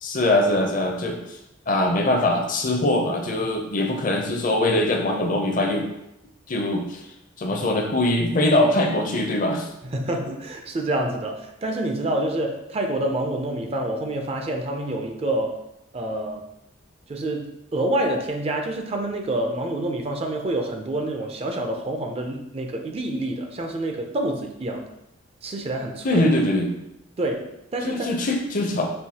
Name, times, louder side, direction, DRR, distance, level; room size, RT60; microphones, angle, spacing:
voice 1, 0.0-1.4 1.7-5.9 6.5-7.0 7.4-9.7 26.0-26.7 27.8-28.9, left 1 dB, 40° left, 3 dB, 0.5 m, -22 dB
voice 2, 9.8-15.6 15.9-16.4 17.1-24.9 25.4-26.2 27.2-28.1, right 1 dB, 30° right, 3 dB, 0.4 m, -27 dB
5.6 x 2.7 x 2.8 m, 0.84 s
head